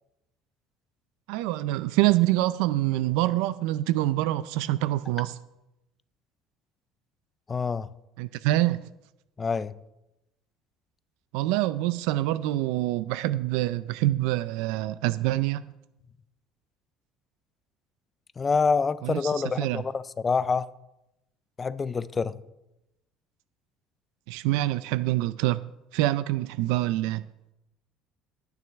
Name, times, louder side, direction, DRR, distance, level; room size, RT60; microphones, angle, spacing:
voice 1, 1.3-5.4 8.2-8.8 11.3-15.6 19.0-19.8 24.3-25.6 25.9-27.2, right 16 dB, 85° right, 0.4 m, -26 dB
voice 2, 7.5-7.9 9.4-9.8 18.4-20.7 21.6-22.4, left 5 dB, 20° left, 0.4 m, -26 dB
19.0 x 9.3 x 3.5 m
cardioid pair, 165°, 0 cm